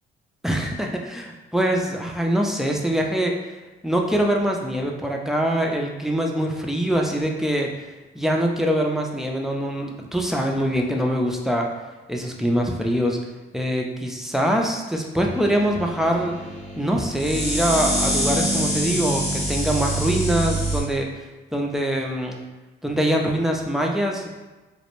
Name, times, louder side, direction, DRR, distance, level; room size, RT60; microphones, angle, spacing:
voice 1, 0.4-3.3 3.8-7.7 8.1-11.7 12.1-13.2 13.5-16.4 16.8-21.1 21.5-22.4 22.8-24.3, equal, ahead, 1 dB, 0.3 m, -23 dB
sound 1, 15.3-20.8, right 1 dB, 60° left, 0.8 m, -25 dB
2.5 x 2.0 x 2.9 m, 1.2 s
cardioid pair, 90°, 20 cm